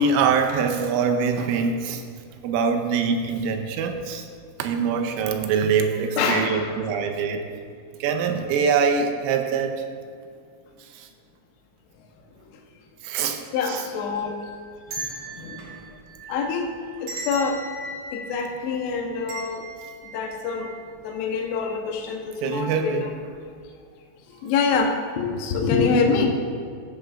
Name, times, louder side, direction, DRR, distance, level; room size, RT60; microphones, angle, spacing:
voice 1, 0.0-2.0 2.4-4.2 4.6-7.5 8.0-9.7 11.0-11.1 13.0-13.4 13.7-13.8 22.4-23.1, right 5 dB, 85° right, 5 dB, 3.2 m, -23 dB
voice 2, 6.2-6.7 13.5-14.3 15.4-15.5 16.3-16.7 17.3-17.6 18.3-19.6 20.1-20.7 21.0-23.1 24.4-24.9 25.2-26.3, left 5 dB, 75° left, 1 dB, 2.8 m, -25 dB
sound 1, 14.0-21.2 21.5-21.6 22.5-22.8 23.2-23.4, right 2 dB, 65° right, 2.8 m, -39 dB
16.0 x 6.9 x 2.5 m, 2.2 s
omnidirectional pair, 5.7 m